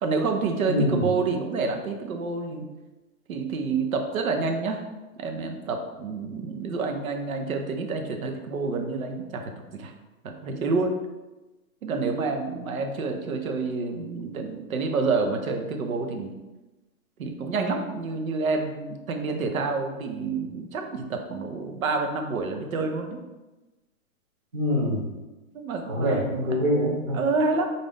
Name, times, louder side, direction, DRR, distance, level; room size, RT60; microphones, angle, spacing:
voice 1, 0.0-2.7 3.3-4.8 5.2-9.9 10.2-11.0 11.8-16.3 17.2-23.2 25.5-26.6 27.1-27.7, right 4 dB, 70° right, 4 dB, 0.8 m, -28 dB
voice 2, 0.7-1.0 24.5-25.0 25.9-27.2, equal, 20° right, -5 dB, 0.4 m, -24 dB
4.0 x 2.6 x 3.4 m, 1.1 s
hypercardioid pair, 140°, 43 cm